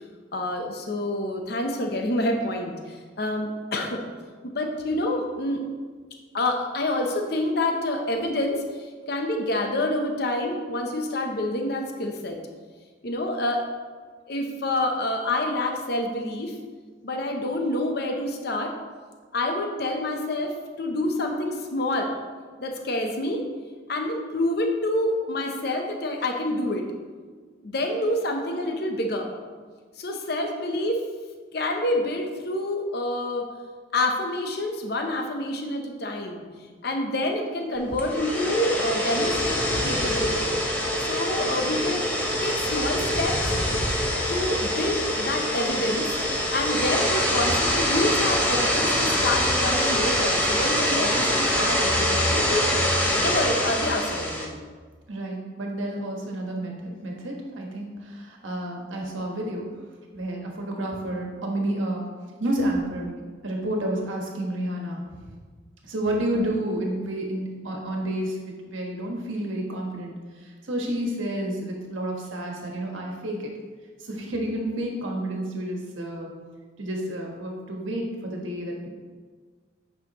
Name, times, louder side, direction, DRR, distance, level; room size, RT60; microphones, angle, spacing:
voice 1, 0.3-4.0 4.4-5.6 6.3-12.4 13.0-13.7 14.3-16.6 17.0-18.8 19.3-22.1 22.6-23.5 23.9-26.9 27.6-29.3 30.0-31.1 31.5-33.5 33.9-36.4 36.8-40.5 41.0-42.1 42.4-43.5 44.3-46.2 46.5-52.9 53.1-54.5, left 1 dB, 55° left, 3 dB, 0.8 m, -27 dB
sound 1, 37.9-54.5, left 1 dB, 10° left, 0.7 m, -24 dB
voice 2, 55.1-59.7 60.1-62.1 62.4-65.0 65.8-73.5 74.0-76.3 76.8-78.9, right 1 dB, 80° right, 0 dB, 1.4 m, -30 dB
8.7 x 5.6 x 3.0 m, 1.5 s
head